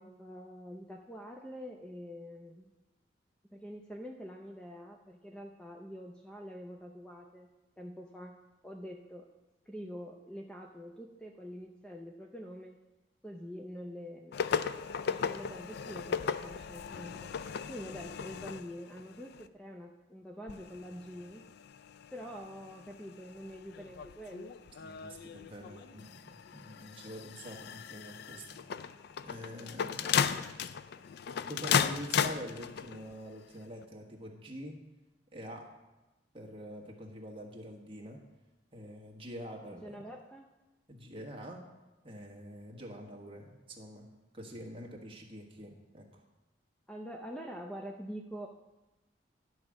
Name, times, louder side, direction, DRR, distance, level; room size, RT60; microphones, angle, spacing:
voice 1, 0.0-2.7 3.5-7.5 7.8-8.4 8.6-9.3 9.7-12.8 13.2-14.4 15.1-17.3 17.7-21.4 22.1-24.5 29.5-30.6 39.6-40.4 46.9-48.5, equal, 5° left, 1 dB, 0.5 m, -46 dB
sound 1, 14.3-19.5 20.5-33.2 33.8-33.9, left 7 dB, 60° left, 0.3 m, -36 dB
voice 2, 24.8-26.2 26.5-28.6 29.2-30.4 31.2-34.8 35.3-35.7 36.3-38.2 38.7-40.0 40.9-41.6 42.0-44.1 44.3-46.2, equal, 30° right, 0 dB, 1.4 m, -45 dB
11.0 x 4.8 x 6.3 m, 1.1 s
head